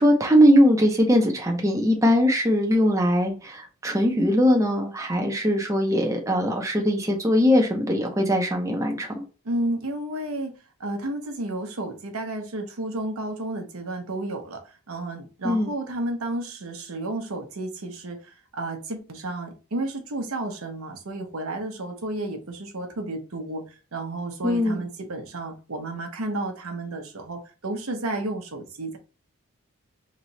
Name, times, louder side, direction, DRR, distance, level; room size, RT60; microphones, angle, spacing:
voice 1, 0.0-9.2 15.4-15.7 24.4-24.8, equal, 15° right, 0.6 m, -21 dB
voice 2, 9.4-29.0, right 2 dB, 75° right, 0.9 m, -32 dB
3.2 x 2.9 x 4.0 m
head